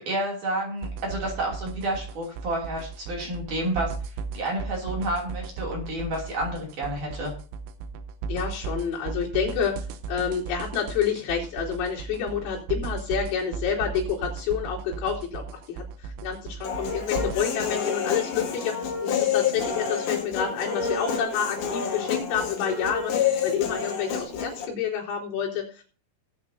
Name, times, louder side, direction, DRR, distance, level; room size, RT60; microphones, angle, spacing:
voice 1, 0.0-3.9 4.3-7.3, right 1 dB, 45° right, -1 dB, 3.8 m, -30 dB
sound 1, 0.8-17.4, right 5 dB, 80° right, 3.2 m, -35 dB
voice 2, 8.3-9.8 10.1-25.8, left 7 dB, 80° left, -4 dB, 6.2 m, -29 dB
Human voice, 16.6-24.7, left 7 dB, 55° left, 3.6 m, -28 dB
19.0 x 8.5 x 2.8 m, 0.38 s
omnidirectional pair, 6.0 m